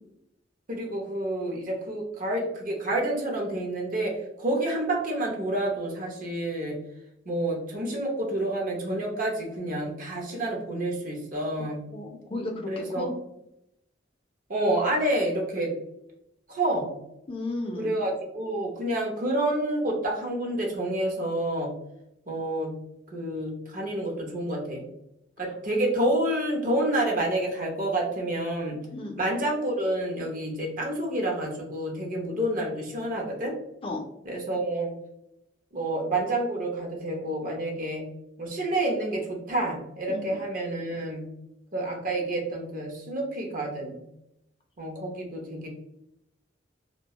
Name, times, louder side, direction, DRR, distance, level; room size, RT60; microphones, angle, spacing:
voice 1, 0.7-6.8 7.3-11.8 12.7-13.1 14.5-15.7 16.5-16.9 17.8-21.7 22.3-22.7 23.1-24.8 25.4-28.8 29.2-33.6 34.2-34.9 35.7-38.1 38.4-41.3 41.7-44.0 44.8-45.7, right 1 dB, 50° right, 0 dB, 0.6 m, -29 dB
voice 2, 11.9-13.1 17.3-18.0 28.9-29.2 33.8-34.0 40.1-40.4, left 2 dB, 30° left, 2 dB, 0.3 m, -34 dB
2.3 x 2.2 x 2.8 m, 0.81 s
head